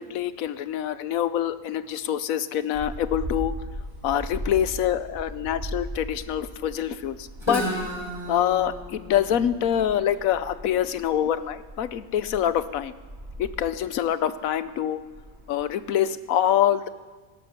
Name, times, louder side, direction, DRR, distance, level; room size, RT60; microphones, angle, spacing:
voice 1, 0.0-3.5 4.0-7.6 8.3-12.9 13.4-15.0 15.5-16.9, left 10 dB, 80° left, 14 dB, 1.2 m, -25 dB
sound 1, 2.7-15.9, equal, 45° right, 3.2 m, -39 dB
Guitar, 7.4-11.2, equal, 20° right, 4.4 m, -34 dB
16.5 x 12.0 x 6.9 m, 1.4 s
omnidirectional pair, 1.4 m